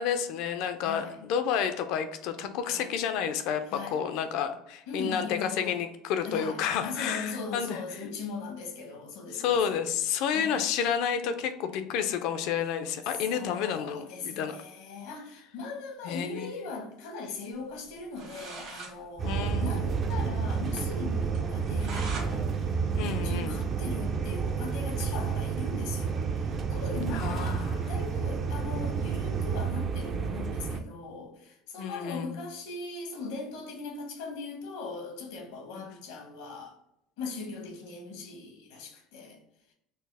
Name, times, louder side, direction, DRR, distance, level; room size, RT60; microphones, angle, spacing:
voice 1, 0.0-7.8 9.3-14.6 16.0-16.5 19.2-19.9 22.9-23.6 27.1-27.7 31.8-32.3 35.7-35.9, left 8 dB, 70° left, 0.4 m, -30 dB
voice 2, 0.8-1.2 2.7-2.9 3.7-4.0 4.9-5.8 6.2-9.8 10.3-10.7 13.1-36.8 37.2-39.4, left 3 dB, 85° left, 1.0 m, -39 dB
sound 1, 17.9-18.0 18.1-18.9 19.3-19.4 19.6-19.7 20.1-20.2 20.6-20.7 21.3-22.3 22.7-24.0, right 4 dB, 60° right, 1.5 m, -42 dB
sound 2, 19.2-30.8, right 6 dB, 35° right, 0.4 m, -30 dB
4.3 x 2.0 x 3.3 m
supercardioid pair, 110°, 0 cm